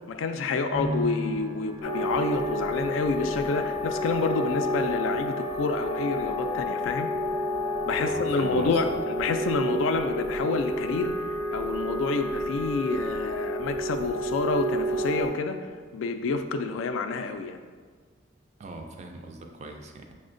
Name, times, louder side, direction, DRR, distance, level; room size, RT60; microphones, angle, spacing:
voice 1, 0.1-7.1 7.8-15.6 15.9-17.6, left 4 dB, 80° left, 7 dB, 0.3 m, -28 dB
sound 1, 0.7-16.0 16.2-17.1, equal, 80° right, 1.0 m, -43 dB
sound 2, 1.8-15.3, equal, 20° left, 0.5 m, -30 dB
voice 2, 8.0-8.8 18.6-20.1, right 3 dB, 35° right, 4 dB, 0.3 m, -41 dB
6.1 x 2.1 x 2.5 m, 1.5 s
head